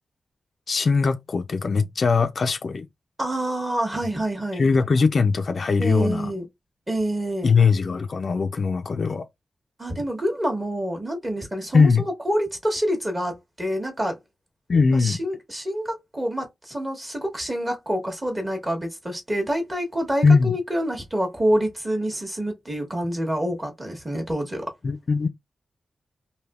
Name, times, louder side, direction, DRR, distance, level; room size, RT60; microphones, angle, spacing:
voice 1, 0.7-2.9 4.5-6.3 7.4-9.3 11.7-12.0 14.7-15.2 20.2-20.5 24.8-25.3, left 4 dB, 45° left, 0.3 m, -20 dB
voice 2, 3.2-4.7 5.8-6.5 6.9-7.5 9.8-14.2 14.9-24.7, equal, 20° right, 1.0 m, -27 dB
3.3 x 2.6 x 2.3 m
wide cardioid pair, 175°, 0 cm